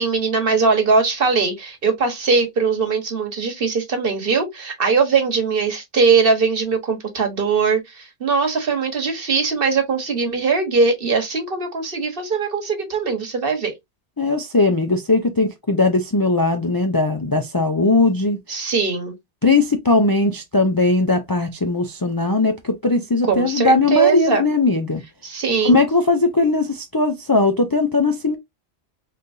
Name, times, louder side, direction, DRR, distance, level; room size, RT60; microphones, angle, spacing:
voice 1, 0.0-13.7 18.5-19.1 23.3-24.4 25.2-25.8, right 5 dB, 50° right, 1.4 m, -20 dB
voice 2, 14.2-18.4 19.4-25.0 25.6-28.4, left 3 dB, 30° left, 0.4 m, -19 dB
4.0 x 3.3 x 2.6 m
omnidirectional pair, 1.2 m